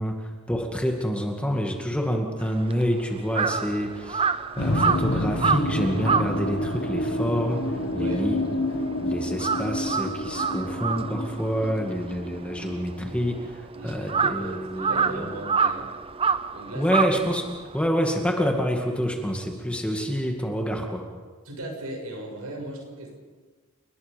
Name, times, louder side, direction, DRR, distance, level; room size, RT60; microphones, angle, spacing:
voice 1, 0.0-4.3 4.6-7.7 7.9-8.4 9.0-15.3 16.7-21.1, equal, 5° left, 2 dB, 2.2 m, -27 dB
Crow, 2.4-8.9 9.2-17.9, right 5 dB, 25° right, 0.6 m, -28 dB
sound 1, 4.6-13.5, left 1 dB, 75° left, 1.9 m, -29 dB
voice 2, 7.9-8.3 13.7-15.9 16.5-17.0 21.4-23.1, right 1 dB, 85° right, 1 dB, 6.8 m, -37 dB
30.0 x 19.5 x 5.4 m, 1.4 s
head